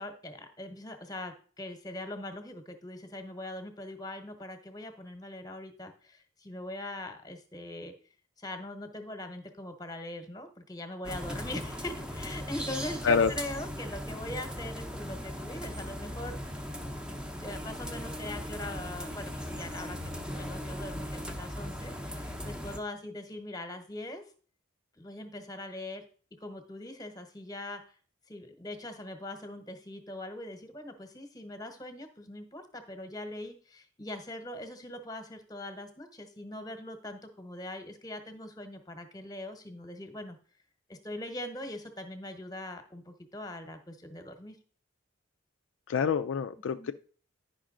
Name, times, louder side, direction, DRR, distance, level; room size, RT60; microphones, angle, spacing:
voice 1, 0.0-7.9 8.4-16.6 17.4-24.2 25.0-26.0 26.4-27.9 28.3-40.4 40.9-44.6 46.7-46.9, left 1 dB, 20° left, 8 dB, 1.0 m, -41 dB
sound 1, 11.0-22.8, equal, 5° right, 0.7 m, -38 dB
voice 2, 45.9-46.9, left 6 dB, 70° left, 9 dB, 0.4 m, -26 dB
9.9 x 5.5 x 3.7 m, 0.42 s
head